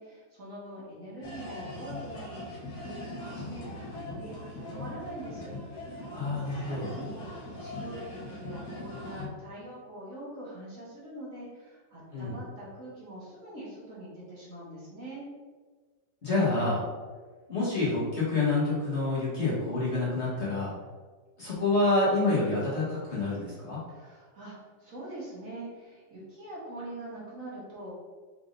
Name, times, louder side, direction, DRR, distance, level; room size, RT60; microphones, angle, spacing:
voice 1, 0.0-5.5 6.4-15.3 23.9-24.5 24.8-28.0, right 1 dB, 50° right, -7 dB, 1.5 m, -43 dB
sound 1, 1.2-9.3, left 1 dB, 65° left, 1.5 m, -40 dB
voice 2, 6.1-6.9 12.1-12.3 16.2-16.8 17.5-20.7 21.4-23.8, left 2 dB, 40° left, -8 dB, 1.4 m, -27 dB
5.0 x 3.5 x 2.6 m, 1.4 s
omnidirectional pair, 1.9 m